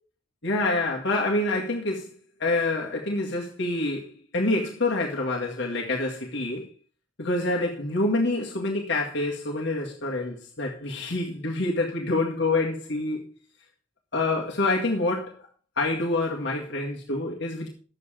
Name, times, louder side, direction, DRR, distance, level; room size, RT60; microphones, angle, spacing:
voice 1, 0.4-2.1 2.4-6.7 7.2-13.3 14.1-15.4 15.8-17.7, left 2 dB, 65° left, 2.0 m, -27 dB
11.0 x 8.2 x 5.1 m
head